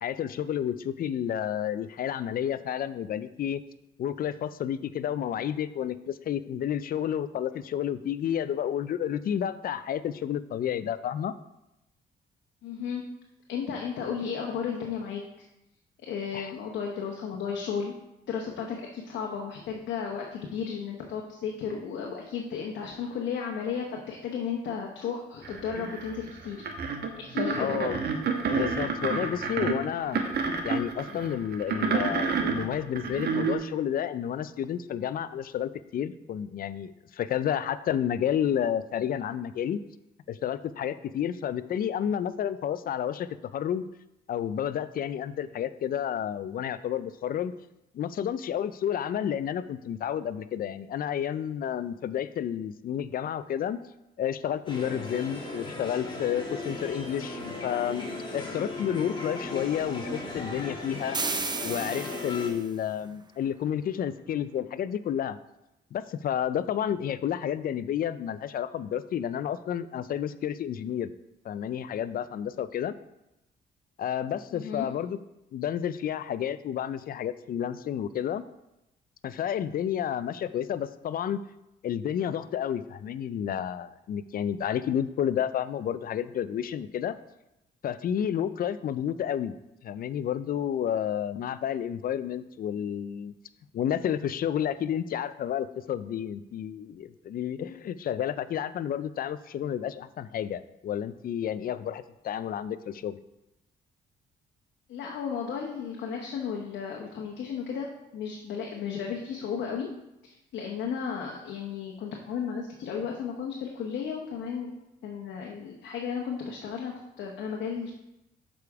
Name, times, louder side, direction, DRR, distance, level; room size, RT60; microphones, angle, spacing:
voice 1, 0.0-3.6 4.0-11.3 16.3-16.5 27.6-28.0 28.5-30.2 30.6-39.8 40.3-43.8 44.3-47.5 47.9-53.8 54.2-58.1 58.3-61.2 61.6-65.4 65.9-71.1 71.4-72.9 74.0-75.2 75.5-78.4 79.2-81.4 81.8-87.2 87.8-89.5 89.8-93.3 93.7-103.2, left 9 dB, 55° left, 15 dB, 0.4 m, -30 dB
voice 2, 12.6-13.0 13.5-15.2 16.0-17.9 18.3-26.6 27.2-27.8 74.5-74.9 104.9-109.9 110.2-114.7 115.0-117.9, left 6 dB, 80° left, 0 dB, 1.0 m, -34 dB
sound 1, 25.4-33.5, right 5 dB, 65° right, 1.0 m, -29 dB
sound 2, 54.7-62.5, left 2 dB, 25° left, 1.6 m, -37 dB
sound 3, 61.1-62.7, right 4 dB, 25° right, 0.6 m, -33 dB
6.9 x 5.0 x 4.7 m, 0.91 s
cardioid pair, 95°, 18 cm